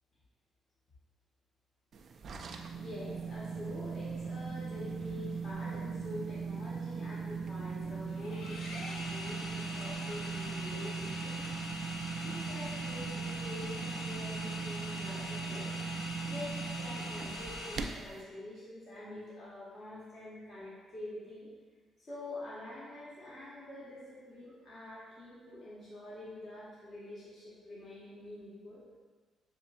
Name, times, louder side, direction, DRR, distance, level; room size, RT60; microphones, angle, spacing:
sound 1, 1.9-18.2, right 5 dB, 60° right, 0.3 m, -39 dB
voice 1, 2.7-11.6 12.2-21.5 22.0-28.8, left 1 dB, 50° left, -9 dB, 1.5 m, -46 dB
sound 2, 8.1-17.8, left 1 dB, 75° left, 0.6 m, -43 dB
6.6 x 2.6 x 2.5 m, 1.4 s
supercardioid pair, 65°, 0 cm